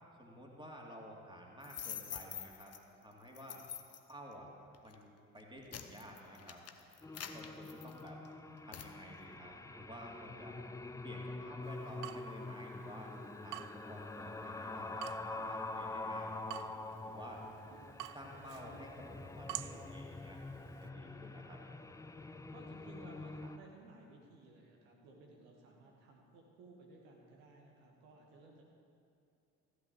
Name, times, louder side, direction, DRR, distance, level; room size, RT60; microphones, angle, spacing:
voice 1, 0.2-2.7 3.0-3.6 4.1-4.5 4.8-6.6 7.3-8.2 8.6-10.6 11.0-13.1 13.4-16.7 17.0-17.4 18.1-20.4 20.7-21.6, equal, 10° right, -1 dB, 2.6 m, -52 dB
sound 1, 1.6-2.8 3.3-4.1 4.7-5.0 5.4-8.3 8.7-8.9, left 8 dB, 35° left, 0.9 m, -46 dB
sound 2, 7.0-23.6, left 2 dB, 10° left, 0.5 m, -46 dB
Water tap faucet / Drip, 11.6-20.9, right 14 dB, 45° right, 0.5 m, -51 dB
voice 2, 22.5-28.6, right 2 dB, 70° right, 0 dB, 1.9 m, -58 dB
14.5 x 8.2 x 7.0 m, 2.5 s
figure-of-eight pair, 45°, 43 cm